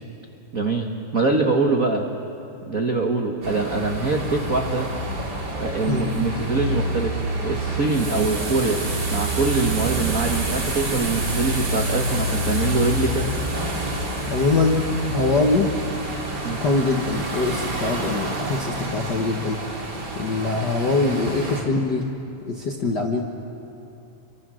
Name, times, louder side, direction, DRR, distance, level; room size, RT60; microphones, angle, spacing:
voice 1, 0.5-2.0 2.6-4.9 5.5-8.8 9.1-13.3 16.4-16.6, right 3 dB, 75° right, 2 dB, 0.7 m, -24 dB
sound 1, 3.4-21.6, right 1 dB, 30° right, 3.0 m, -28 dB
voice 2, 14.3-15.7 16.6-19.6 20.1-22.0 22.4-23.2, left 3 dB, 55° left, 1 dB, 1.2 m, -23 dB
29.5 x 23.5 x 6.3 m, 2.7 s
omnidirectional pair, 4.0 m